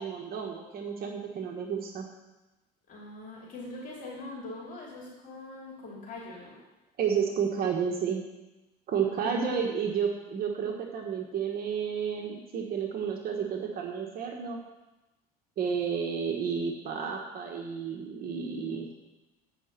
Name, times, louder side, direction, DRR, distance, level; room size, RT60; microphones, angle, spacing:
voice 1, 0.0-2.1 7.0-8.2 8.9-14.6 15.6-18.9, right 7 dB, 50° right, 2 dB, 1.2 m, -31 dB
voice 2, 2.9-6.6 9.0-9.7, left 2 dB, 45° left, -4 dB, 2.8 m, -43 dB
8.4 x 5.8 x 6.6 m, 1.1 s
supercardioid pair, 105°, 19 cm